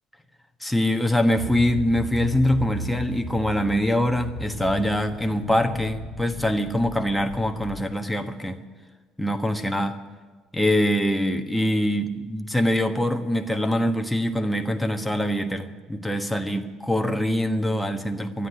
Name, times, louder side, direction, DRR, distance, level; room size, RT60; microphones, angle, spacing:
voice 1, 0.6-8.6 9.2-10.0 10.5-18.5, left 1 dB, 5° left, 5 dB, 1.3 m, -24 dB
sound 1, 1.3-8.0, left 1 dB, 65° left, 1.8 m, -35 dB
13.0 x 9.6 x 9.8 m, 1.4 s
hypercardioid pair, 60°, 0 cm